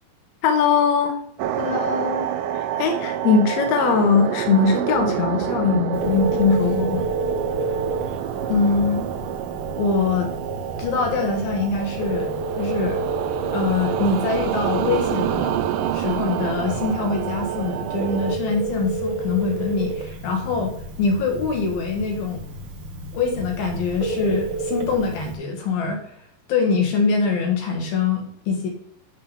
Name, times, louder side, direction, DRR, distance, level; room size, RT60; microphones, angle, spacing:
voice 1, 0.4-1.2 2.8-7.1, left 5 dB, 65° left, 4 dB, 1.9 m, -20 dB
sound 1, 1.4-18.4, right 10 dB, 80° right, 2.1 m, -28 dB
voice 2, 1.6-2.3 8.5-9.1 9.8-10.3 10.8-13.0 13.5-15.6 15.9-22.4 23.1-26.0 26.5-28.7, left 4 dB, 80° left, 2 dB, 3.5 m, -24 dB
Telephone, 5.9-25.3, right 3 dB, 60° right, 1.4 m, -31 dB
11.0 x 3.9 x 5.7 m, 0.67 s
omnidirectional pair, 4.1 m